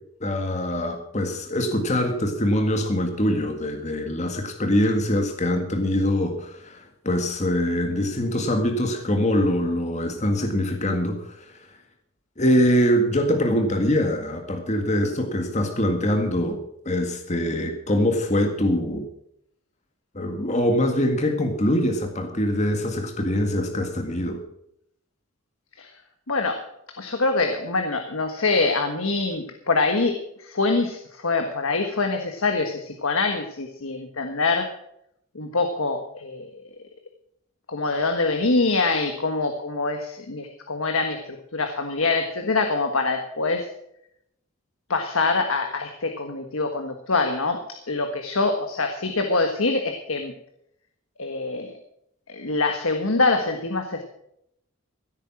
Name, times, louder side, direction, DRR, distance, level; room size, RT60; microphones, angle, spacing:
voice 1, 0.2-11.5 12.4-16.6 16.9-19.1 20.2-24.4, left 1 dB, 35° left, 4 dB, 1.9 m, -23 dB
voice 2, 26.3-34.8 35.3-36.5 37.7-43.7 44.9-50.3 51.2-51.7 52.3-54.0, left 3 dB, 80° left, 5 dB, 1.5 m, -25 dB
16.5 x 8.9 x 6.2 m, 0.74 s
head